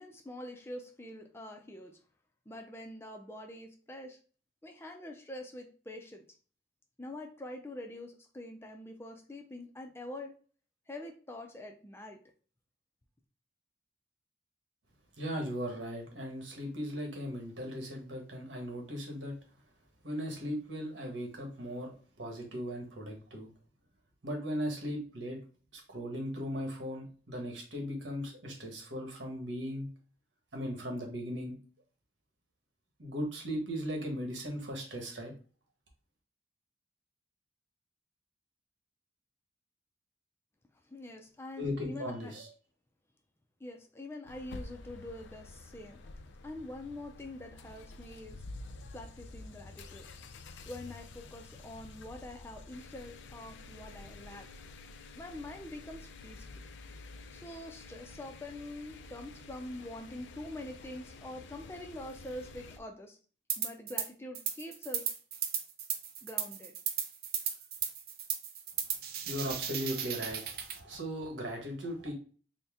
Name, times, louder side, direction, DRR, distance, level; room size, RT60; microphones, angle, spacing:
voice 1, 0.0-2.0 2.5-4.2 4.6-6.2 7.0-10.3 10.9-12.2 40.9-42.3 43.6-46.0 46.4-48.4 48.9-50.1 50.7-54.5 55.2-56.6 57.3-63.2 63.6-65.1 66.2-66.8, left 1 dB, 15° left, 3 dB, 0.4 m, -45 dB
voice 2, 15.2-19.4 20.0-23.5 24.2-25.4 25.7-29.9 30.5-31.6 33.0-35.3 41.6-42.5 69.2-72.1, equal, 85° right, 2 dB, 1.2 m, -38 dB
sound 1, 44.3-62.8, left 3 dB, 80° left, 0.5 m, -49 dB
sound 2, 63.5-64.1 64.3-70.8, right 8 dB, 55° right, 0.5 m, -35 dB
4.1 x 2.1 x 3.5 m, 0.40 s
head